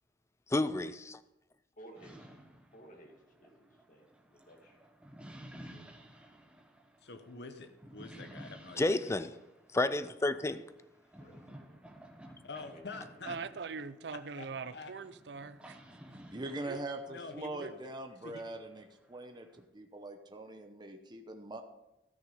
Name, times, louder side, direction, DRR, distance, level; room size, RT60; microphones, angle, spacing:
voice 1, 0.5-1.2 8.8-9.3 9.7-10.6, left 2 dB, 15° left, 0.4 m, -30 dB
voice 2, 1.8-2.4 2.7-4.8 5.3-6.1 9.9-10.2 11.2-11.8 12.5-13.1, right 1 dB, 50° left, 2.2 m, -56 dB
sound 1, 1.9-19.6, equal, 5° right, 1.2 m, -55 dB
voice 3, 7.0-9.2 12.4-13.4 14.3-14.9 17.1-17.7 18.2-18.4, left 3 dB, 70° left, 0.9 m, -46 dB
voice 4, 13.2-15.8 16.7-16.8 17.6-17.7, right 5 dB, 70° right, 0.5 m, -42 dB
voice 5, 16.3-21.6, right 2 dB, 25° right, 0.8 m, -42 dB
13.5 x 6.3 x 5.5 m
head